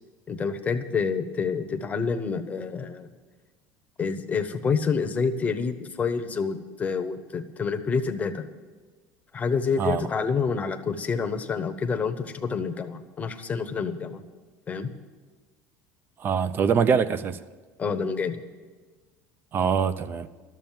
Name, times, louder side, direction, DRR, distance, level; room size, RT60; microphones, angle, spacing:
voice 1, 0.3-3.1 4.0-8.5 9.3-14.2 14.7-14.9 17.8-18.4, left 5 dB, 20° left, 0.9 m, -28 dB
voice 2, 9.8-10.1 16.2-17.4 19.5-20.3, right 6 dB, 30° right, 0.5 m, -24 dB
12.0 x 7.3 x 9.2 m
cardioid pair, 135°, 7 cm